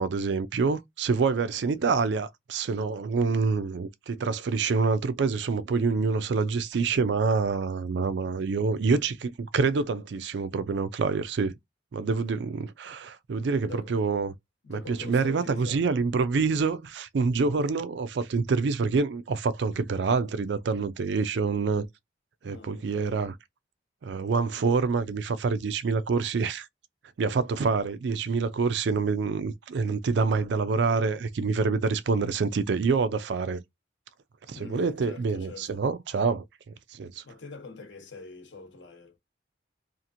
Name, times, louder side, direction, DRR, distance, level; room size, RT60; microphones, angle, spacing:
voice 1, 0.0-11.5 11.9-14.3 14.7-21.9 22.4-23.3 24.0-26.7 27.2-33.6 34.5-36.4 36.9-37.2, right 4 dB, 65° right, 0.4 m, -26 dB
voice 2, 1.6-1.9 13.6-13.9 14.6-16.0 22.4-23.2 34.5-35.8 37.2-39.2, left 4 dB, 70° left, 0.9 m, -44 dB
2.8 x 2.5 x 2.5 m
head